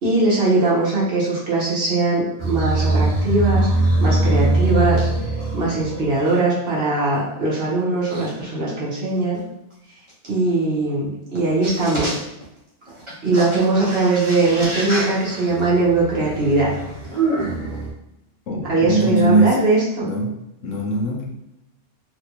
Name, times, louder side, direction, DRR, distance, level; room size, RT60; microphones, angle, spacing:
voice 1, 0.0-5.1 5.5-9.4 10.3-12.2 13.2-16.7 18.6-20.1, right 2 dB, 55° right, -6 dB, 1.3 m, -20 dB
sound 1, 2.4-6.4 7.1-7.2 8.1-8.2 10.2-10.3 11.3-11.4 11.6-12.4 12.9-17.9, right 2 dB, 30° right, 0.8 m, -23 dB
voice 2, 18.5-19.6 20.0-20.3 20.6-21.2, right 2 dB, 90° left, -2 dB, 1.2 m, -20 dB
4.1 x 2.2 x 2.9 m, 0.87 s
omnidirectional pair, 1.3 m